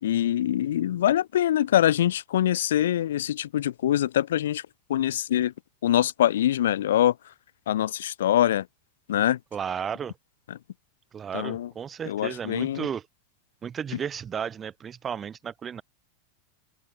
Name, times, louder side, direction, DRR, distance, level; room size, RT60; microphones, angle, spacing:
voice 1, 0.0-4.6 4.9-5.5 5.8-7.1 7.7-8.7 9.1-9.4 10.5-10.6 11.3-11.7 12.1-12.9, left 11 dB, 60° left, 4.4 m, -24 dB
voice 2, 9.5-10.1 11.1-13.0 13.6-15.8, right 7 dB, 20° right, 3.4 m, -33 dB
open air
figure-of-eight pair, 90°, 0 cm